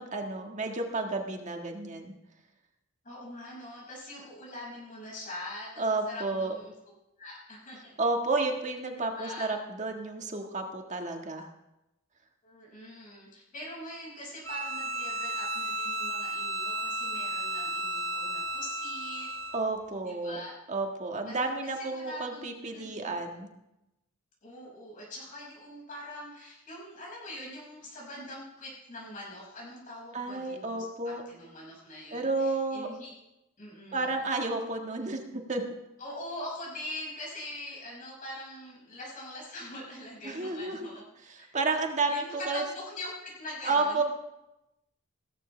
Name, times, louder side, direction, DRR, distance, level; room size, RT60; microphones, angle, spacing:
voice 1, 0.0-2.1 5.8-6.5 8.0-11.5 19.5-20.4 20.7-23.5 30.1-31.2 32.1-32.9 33.9-35.2 35.5-35.6 40.2-41.0 41.3-42.6 43.6-44.0, right 3 dB, 35° right, 3 dB, 1.7 m, -31 dB
voice 2, 3.0-6.7 7.2-7.9 9.1-9.5 12.4-19.3 20.0-20.6 21.2-22.4 22.7-23.1 24.4-33.1 33.6-34.1 36.0-41.0 41.3-41.5 42.1-44.0, left 1 dB, 40° left, -4 dB, 5.8 m, -43 dB
Bowed string instrument, 14.4-19.7, right 1 dB, 85° right, 1.9 m, -33 dB
16.5 x 14.5 x 3.3 m, 0.90 s
head